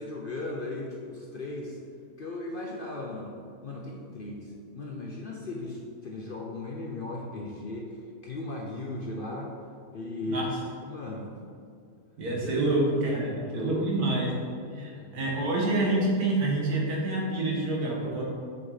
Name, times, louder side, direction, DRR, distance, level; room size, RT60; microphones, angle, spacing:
voice 1, 0.0-1.8 2.2-3.4 3.6-9.5 9.9-10.4 10.8-11.4 12.4-14.2 14.7-15.3, left 2 dB, 50° left, -1 dB, 0.7 m, -37 dB
voice 2, 12.2-14.3 14.7-18.2, right 2 dB, 80° right, -3 dB, 2.0 m, -27 dB
7.1 x 6.2 x 4.0 m, 2.4 s
omnidirectional pair, 1.6 m